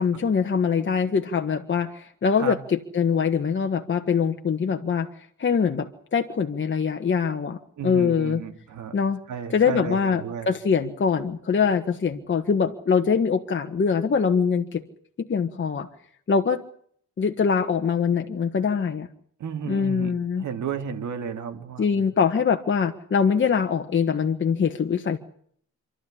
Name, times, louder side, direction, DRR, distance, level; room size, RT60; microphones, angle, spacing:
voice 1, 0.0-5.1 5.4-8.4 8.9-9.2 9.5-14.8 15.2-15.9 16.3-16.6 17.2-19.1 19.7-20.4 21.8-25.2, left 6 dB, 40° left, 5 dB, 1.5 m, -23 dB
voice 2, 7.8-9.0 9.3-10.5 19.4-22.1, right 7 dB, 70° right, 6 dB, 3.0 m, -33 dB
27.5 x 13.0 x 10.0 m, 0.62 s
cardioid pair, 110°, 30 cm